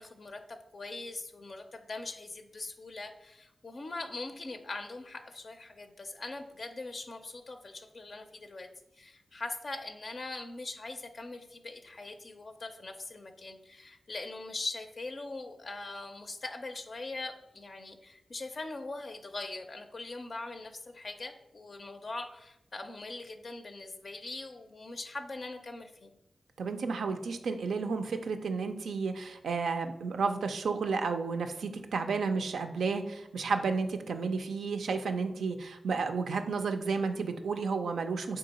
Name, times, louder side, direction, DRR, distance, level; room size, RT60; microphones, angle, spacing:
voice 1, 0.0-8.7 8.9-26.1, left 2 dB, 60° left, 5 dB, 0.4 m, -41 dB
voice 2, 26.6-38.4, right 4 dB, 85° right, 7 dB, 0.3 m, -32 dB
3.6 x 2.8 x 4.0 m, 0.85 s
cardioid pair, 40°, 0 cm